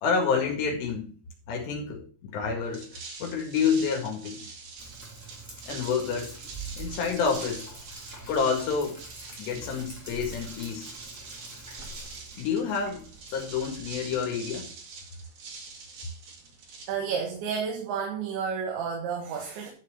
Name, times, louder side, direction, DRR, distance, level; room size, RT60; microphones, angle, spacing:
voice 1, 0.0-1.1 1.5-2.9 3.2-4.4 5.7-6.4 6.8-7.6 8.3-9.0 9.4-10.9 12.4-14.7, left 6 dB, 75° left, 1 dB, 4.1 m, -28 dB
sound 1, 2.6-17.4, right 4 dB, 50° right, 2.8 m, -45 dB
Sink (filling or washing), 4.8-14.5, right 3 dB, 15° right, 0.6 m, -45 dB
voice 2, 16.9-19.7, right 6 dB, 90° right, 1 dB, 3.9 m, -31 dB
11.5 x 4.8 x 6.5 m, 0.40 s
omnidirectional pair, 5.0 m